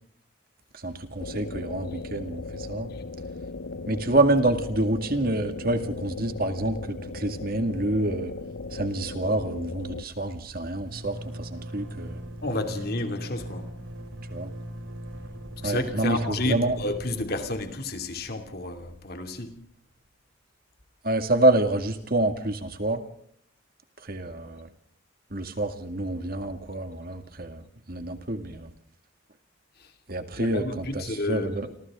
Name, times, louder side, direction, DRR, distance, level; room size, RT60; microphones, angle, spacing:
voice 1, 0.7-2.9 3.9-8.3 8.7-12.2 14.3-14.5 15.6-16.8 21.0-23.0 24.0-24.7 25.3-27.6 27.9-28.7 30.1-31.7, right 2 dB, 45° right, 2.1 m, -27 dB
sound 1, 1.2-10.0, left 3 dB, 80° left, 1.0 m, -37 dB
sound 2, 8.6-8.7 8.9-19.6, equal, 85° right, 6.9 m, -40 dB
voice 2, 12.4-13.7 15.6-19.6 30.4-31.5, left 2 dB, 50° left, 2.7 m, -31 dB
29.0 x 25.5 x 3.7 m
head